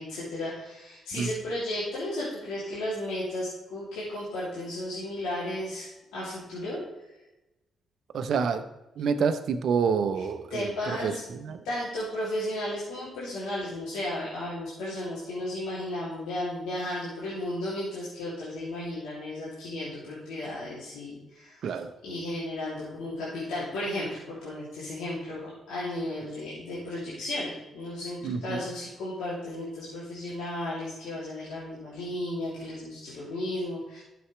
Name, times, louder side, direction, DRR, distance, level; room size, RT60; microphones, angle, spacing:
voice 1, 0.0-6.8 10.5-11.2 11.6-34.0, left 1 dB, 80° left, -9 dB, 2.9 m, -34 dB
voice 2, 8.1-8.6 9.0-11.6 21.6-21.9 28.2-28.6, right 6 dB, 65° right, 9 dB, 0.8 m, -28 dB
12.5 x 7.1 x 3.3 m, 0.99 s
hypercardioid pair, 45°, 0 cm